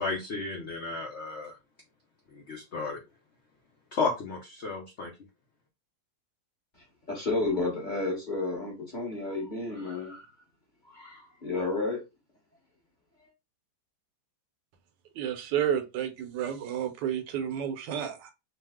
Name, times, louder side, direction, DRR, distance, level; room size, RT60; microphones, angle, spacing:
voice 1, 0.0-1.5 2.3-3.0 3.9-5.1, left 4 dB, 70° left, 0.6 m, -33 dB
voice 2, 7.1-10.3 10.9-12.0, left 2 dB, 35° left, 0.9 m, -31 dB
voice 3, 15.1-18.3, right 9 dB, 75° right, 1.2 m, -31 dB
3.0 x 2.0 x 3.4 m
omnidirectional pair, 2.0 m